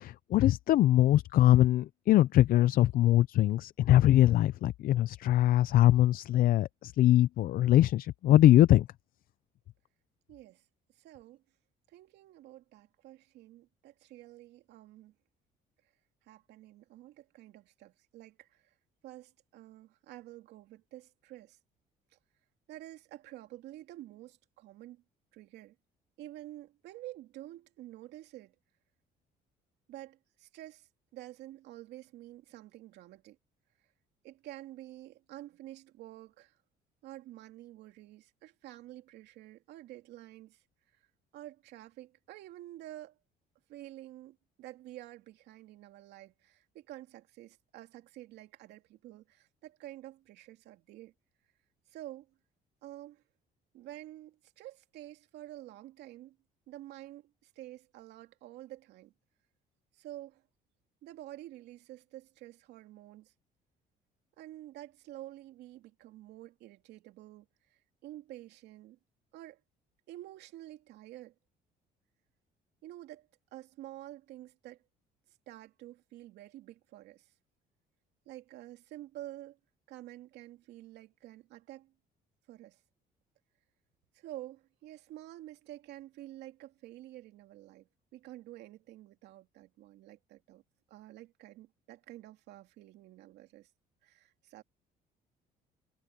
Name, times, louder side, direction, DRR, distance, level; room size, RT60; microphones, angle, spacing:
voice 1, 0.0-8.9, left 13 dB, 60° left, 0.5 m, -23 dB
voice 2, 10.3-10.6 11.0-11.4 11.9-15.1 16.3-18.7 19.0-21.6 22.1-22.2 22.7-25.0 25.3-25.8 26.2-28.5 29.9-33.4 34.2-36.5 37.0-40.6 41.3-43.2 43.7-51.1 51.9-52.3 52.8-53.2 53.7-56.4 56.7-59.1 59.9-60.4 61.0-63.3 64.4-69.0 69.3-69.6 70.1-71.3 72.8-74.8 75.5-77.3 78.3-79.6 79.9-81.9 82.5-82.8 84.1-90.6 90.9-93.7 94.0-94.6, right 15 dB, 80° right, 2.7 m, -49 dB
cardioid pair, 110°, 17 cm